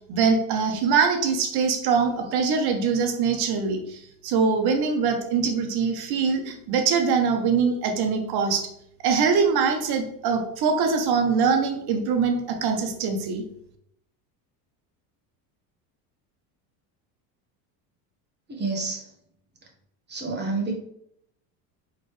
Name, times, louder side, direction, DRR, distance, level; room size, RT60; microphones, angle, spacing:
voice 1, 0.1-8.7 9.0-13.4, right 5 dB, 50° right, 4 dB, 1.1 m, -23 dB
voice 2, 18.5-19.1 20.1-20.7, right 3 dB, 20° right, 0 dB, 1.4 m, -29 dB
4.0 x 3.3 x 3.2 m, 0.73 s
supercardioid pair, 90°, 48 cm